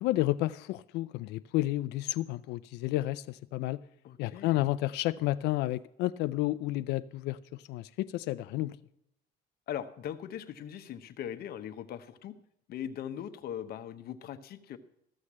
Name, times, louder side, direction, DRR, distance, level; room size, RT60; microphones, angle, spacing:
voice 1, 0.0-3.8 4.2-7.4 7.7-8.8, left 16 dB, 85° left, 0.4 m, -31 dB
voice 2, 4.0-4.6 9.7-12.4 12.7-14.8, left 10 dB, 65° left, 0.9 m, -40 dB
14.5 x 6.5 x 7.3 m
cardioid pair, 110°, 17 cm